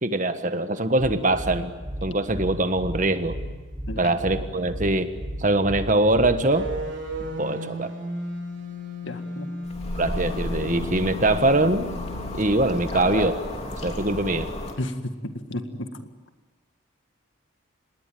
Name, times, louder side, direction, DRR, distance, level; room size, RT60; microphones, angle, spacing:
voice 1, 0.0-1.7 2.0-3.4 4.0-5.1 5.4-6.7 7.4-7.9 9.9-11.9 12.3-13.4 13.8-14.5, right 2 dB, 40° right, 9 dB, 1.4 m, -23 dB
sound 1, 1.0-7.3, equal, ahead, 4.5 m, -35 dB
sound 2, 6.5-12.6, left 1 dB, 65° right, 4.0 m, -35 dB
voice 2, 9.0-9.5 14.8-15.9, left 1 dB, 65° left, 7 dB, 2.0 m, -32 dB
sound 3, 9.6-14.7, left 1 dB, 30° left, 3.2 m, -32 dB
26.5 x 20.5 x 9.2 m, 1.3 s
head